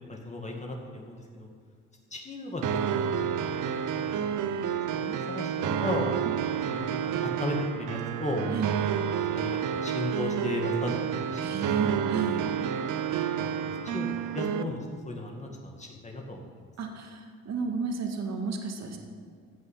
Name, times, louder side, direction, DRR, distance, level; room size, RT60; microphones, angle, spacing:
voice 1, 0.1-1.5 2.1-3.6 3.9-4.3 4.6-6.1 6.7-8.5 9.3-11.6 13.4-14.8 15.1-16.5, left 1 dB, 25° left, 0 dB, 2.2 m, -35 dB
sound 1, 2.6-14.6, right 8 dB, 80° right, 0.8 m, -30 dB
voice 2, 11.4-12.5 16.8-19.0, right 5 dB, 60° right, 3 dB, 2.0 m, -33 dB
15.0 x 5.6 x 8.5 m, 2.2 s
cardioid pair, 90°, 30 cm